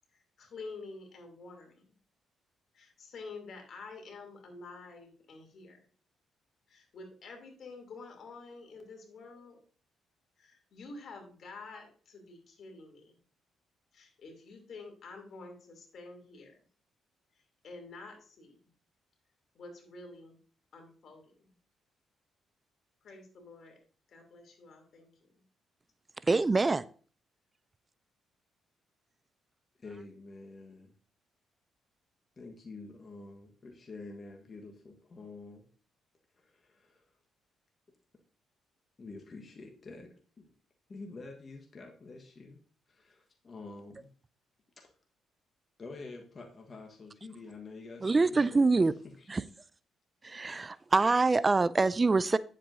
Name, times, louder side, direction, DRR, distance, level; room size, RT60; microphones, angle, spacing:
voice 1, 0.4-1.9 2.7-5.8 6.7-9.6 10.4-13.1 13.9-16.6 17.6-18.6 19.5-20.4 20.7-21.4 23.0-23.8 24.1-25.1, left 3 dB, 60° left, 4 dB, 2.9 m, -48 dB
voice 2, 26.3-26.8 48.0-48.9 49.3-49.4 50.2-52.4, right 3 dB, 25° right, 17 dB, 0.3 m, -25 dB
voice 3, 29.8-30.9 32.4-35.7 36.4-37.0 39.0-40.5 40.9-42.6 42.9-44.1 44.8-44.9 45.8-48.6 49.0-49.3, left 3 dB, 35° left, 2 dB, 1.3 m, -48 dB
9.6 x 7.5 x 2.7 m, 0.43 s
cardioid pair, 90°, 0 cm